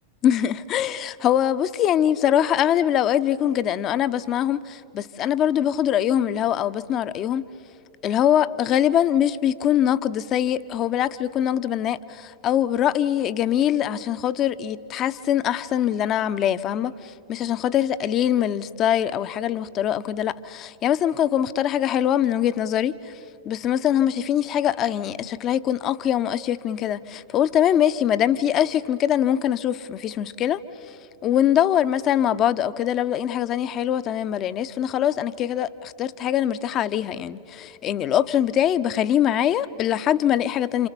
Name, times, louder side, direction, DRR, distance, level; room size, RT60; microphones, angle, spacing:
voice 1, 0.2-7.4 8.0-23.1 23.4-31.0 31.2-40.9, left 10 dB, 35° left, 0.8 m, -23 dB
29.5 x 28.0 x 7.1 m
figure-of-eight pair, 90°, 0 cm